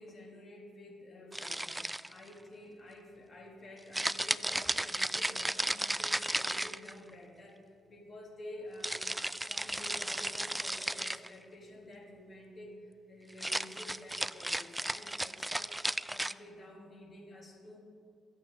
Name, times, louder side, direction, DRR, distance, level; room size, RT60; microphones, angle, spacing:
voice 1, 0.0-9.1 9.5-15.8 16.1-17.8, left 1 dB, 45° left, -2 dB, 3.5 m, -50 dB
sound 1, 1.3-2.3 3.9-7.1 8.8-11.3 13.3-16.3, right 1 dB, 10° right, 0.3 m, -34 dB
24.0 x 8.2 x 4.0 m, 2.3 s
cardioid pair, 90°, 0 cm